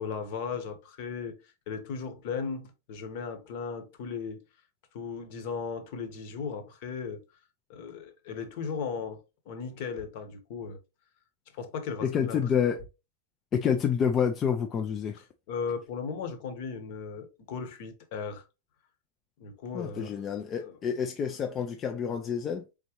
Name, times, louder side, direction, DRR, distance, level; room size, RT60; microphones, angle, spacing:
voice 1, 0.0-1.4 1.7-4.4 4.9-7.2 7.7-10.8 11.5-12.5 15.5-18.4 19.4-20.1 20.6-20.7, left 5 dB, 50° left, 1.0 m, -36 dB
voice 2, 12.0-12.8 13.5-15.2 19.7-22.6, left 7 dB, 20° left, 0.4 m, -28 dB
4.1 x 3.6 x 2.9 m
supercardioid pair, 165°, 0 cm